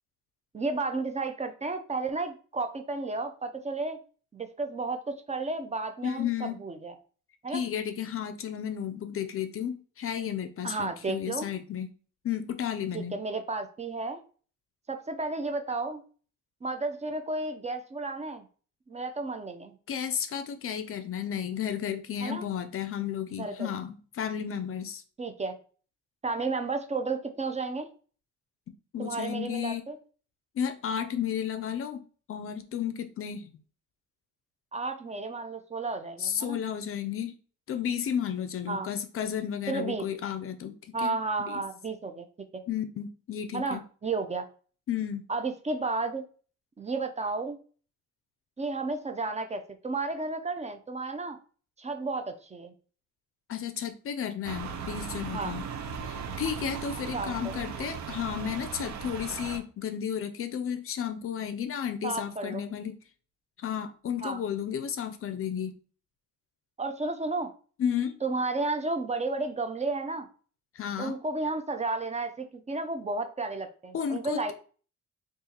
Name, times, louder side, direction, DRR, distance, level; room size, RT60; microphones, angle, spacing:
voice 1, 0.5-4.0 4.3-6.9 7.4-7.6 10.6-11.5 12.9-14.2 14.9-16.0 16.6-18.4 18.9-19.7 22.2-22.4 23.4-23.7 25.2-25.6 26.2-27.9 29.0-30.0 34.7-36.6 38.7-38.9 39.7-40.1 40.9-42.3 42.5-42.6 43.5-44.4 45.3-46.3 46.8-47.6 48.6-51.4 51.8-52.7 55.3-55.5 57.1-57.5 62.0-62.6 64.2-64.4 66.8-67.5 68.2-70.3 71.0-74.5, right 3 dB, 25° right, 0.5 m, -32 dB
voice 2, 6.0-6.6 7.5-11.9 12.2-13.2 19.9-25.0 28.9-29.8 30.6-32.0 32.3-33.5 36.2-37.4 37.7-41.1 41.4-41.6 42.7-43.8 44.9-45.2 53.5-55.6 56.0-62.9 63.6-65.7 67.8-68.2 70.7-71.1 73.9-74.5, left 9 dB, 45° left, 0.5 m, -33 dB
sound 1, 54.4-59.6, right 6 dB, 65° right, 0.6 m, -37 dB
2.7 x 2.5 x 3.8 m
cardioid pair, 90°, 30 cm